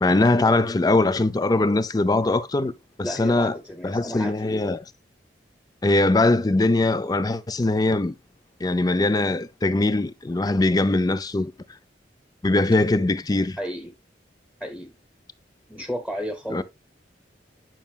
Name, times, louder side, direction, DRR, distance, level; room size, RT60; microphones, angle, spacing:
voice 1, 0.0-2.7 3.0-3.6 3.8-4.8 5.8-8.1 8.6-11.5 12.4-13.6 16.5-16.6, left 2 dB, 20° left, 0.4 m, -21 dB
voice 2, 3.0-4.7 13.6-13.9 14.6-15.0 15.7-16.6, equal, 5° left, 1.0 m, -33 dB
9.1 x 5.6 x 2.3 m
head